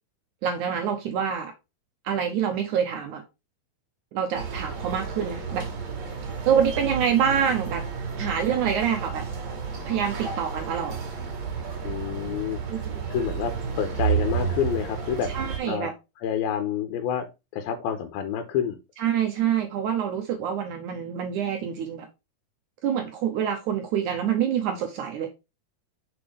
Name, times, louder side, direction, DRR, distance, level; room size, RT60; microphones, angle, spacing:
voice 1, 0.4-1.5 2.1-3.2 4.1-5.7 6.5-7.8 8.2-9.3 9.9-11.0 12.7-12.8 15.3-15.9 19.0-22.1 22.8-25.3, right 8 dB, 75° right, 1.9 m, -26 dB
sound 1, 4.3-15.6, right 6 dB, 50° right, 2.9 m, -31 dB
voice 2, 11.8-12.6 13.1-15.3 15.6-15.9 16.2-17.3 17.5-18.8, left 8 dB, 85° left, 2.6 m, -28 dB
7.0 x 4.4 x 3.5 m
omnidirectional pair, 4.3 m